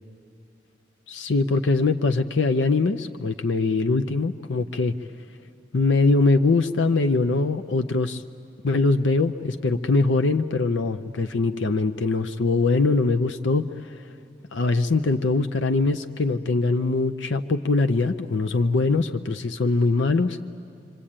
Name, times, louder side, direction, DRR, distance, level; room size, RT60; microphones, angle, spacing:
voice 1, 1.1-4.9 5.7-8.2 8.6-14.1 14.5-20.4, left 3 dB, 80° left, 7 dB, 0.6 m, -22 dB
26.0 x 26.0 x 8.8 m, 2.6 s
head